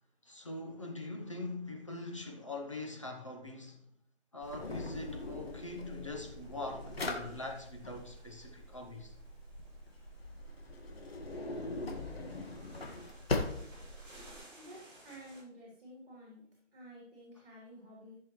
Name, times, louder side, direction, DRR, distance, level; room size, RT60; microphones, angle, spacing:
voice 1, 0.2-3.8 4.3-9.1, left 2 dB, 25° left, 0.9 m, -43 dB
Drawer open or close, 4.4-14.4, left 2 dB, 55° left, 1.7 m, -41 dB
sound 1, 4.4-15.4, right 1 dB, 25° right, 4.6 m, -60 dB
voice 2, 14.6-16.5 16.7-18.1, equal, 50° right, 3.6 m, -52 dB
14.5 x 6.6 x 3.1 m
hypercardioid pair, 175°, 36 cm